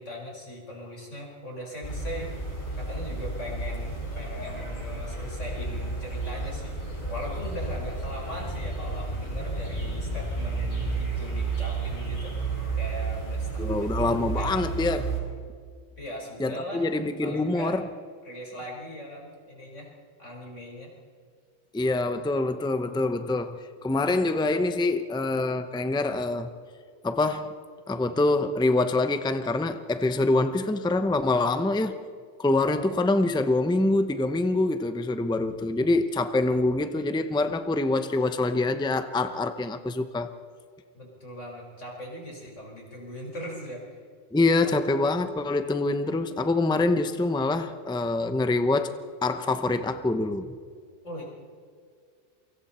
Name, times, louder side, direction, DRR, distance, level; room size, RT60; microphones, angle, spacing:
voice 1, 0.0-2.3 2.8-12.3 12.7-15.1 16.0-16.9 17.2-17.8 18.2-19.9 20.2-20.9 41.0-44.0 44.6-45.1 51.0-51.3, equal, 85° left, 5.3 m, -40 dB
sound 1, 1.8-15.2, right 3 dB, 45° left, 5.5 m, -32 dB
voice 2, 13.6-15.1 16.4-17.8 21.7-26.5 27.0-27.5 27.9-32.0 32.4-40.3 44.3-48.9 49.2-50.5, left 2 dB, 5° left, 0.7 m, -25 dB
28.0 x 24.5 x 4.4 m
omnidirectional pair, 1.2 m